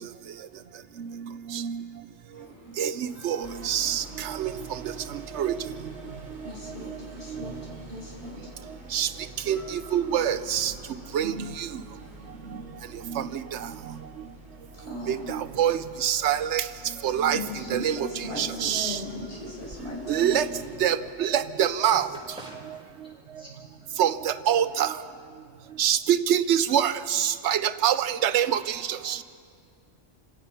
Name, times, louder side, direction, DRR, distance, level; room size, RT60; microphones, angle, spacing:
voice 1, 1.5-1.8 2.8-4.6 5.3-5.6 7.3-7.4 8.9-9.1 9.5-10.7 11.1-11.7 13.1-13.7 15.1-16.6 17.0-17.4 17.7-18.1 18.4-19.0 20.1-20.5 20.8-22.1 24.0-24.9 25.8-29.2, right 9 dB, 70° right, 13 dB, 1.0 m, -25 dB
sound 1, 2.3-21.1, left 1 dB, 25° left, 4.6 m, -53 dB
sound 2, 3.4-22.2, right 2 dB, 45° right, 2.6 m, -48 dB
voice 2, 6.4-7.6 7.9-8.4 14.8-15.4 17.3-20.4, left 1 dB, 65° left, -4 dB, 5.3 m, -37 dB
voice 3, 22.4-23.5 25.6-25.7, right 1 dB, 5° right, -7 dB, 6.8 m, -47 dB
28.5 x 16.5 x 5.6 m, 2.2 s
omnidirectional pair, 1.2 m